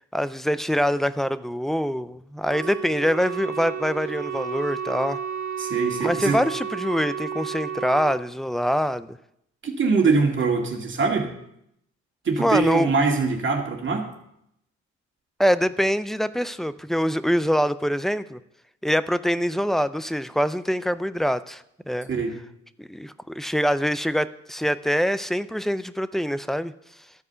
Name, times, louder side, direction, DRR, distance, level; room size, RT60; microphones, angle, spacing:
voice 1, 0.1-5.2 6.0-9.2 12.4-12.9 15.4-18.4 18.8-22.1 22.8-26.7, equal, ahead, 14 dB, 0.4 m, -24 dB
Wind instrument woodwind instrument, 2.4-8.2, right 8 dB, 70° right, 0.7 m, -32 dB
voice 2, 5.6-6.4 9.6-11.3 12.2-14.1 22.1-22.3, right 4 dB, 40° right, 1 dB, 2.2 m, -23 dB
13.5 x 4.8 x 6.8 m, 0.77 s
cardioid pair, 90°, 30 cm